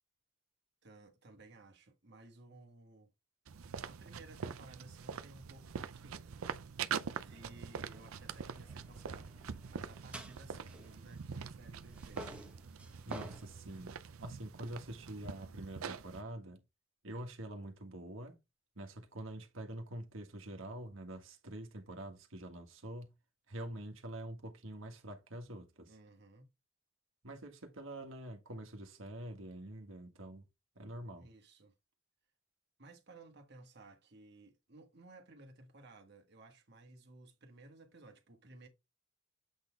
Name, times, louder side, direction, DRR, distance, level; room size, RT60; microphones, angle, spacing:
voice 1, 0.8-3.1 3.8-6.4 7.2-12.5 25.9-26.5 31.2-31.7 32.8-38.7, right 2 dB, 55° right, 1.6 m, -57 dB
sound 1, 3.5-16.2, right 6 dB, 90° right, 0.5 m, -44 dB
sound 2, 7.3-11.5 11.8-13.9, equal, 5° right, 1.1 m, -53 dB
voice 2, 13.0-13.9 14.2-16.6 17.0-18.4 18.7-23.1 23.5-25.9 27.2-30.4 30.7-31.3, right 1 dB, 70° right, 1.6 m, -46 dB
7.9 x 4.0 x 3.4 m
head